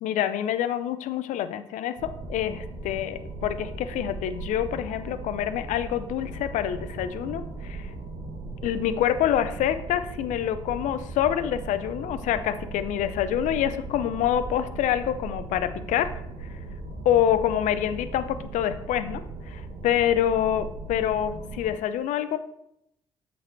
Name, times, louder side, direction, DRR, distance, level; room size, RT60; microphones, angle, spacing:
voice 1, 0.0-7.9 8.6-16.1 17.0-22.4, left 10 dB, 75° left, 13 dB, 0.6 m, -26 dB
sound 1, 2.0-21.7, right 3 dB, 75° right, 1.3 m, -38 dB
8.1 x 5.3 x 4.6 m, 0.79 s
hypercardioid pair, 45°, 13 cm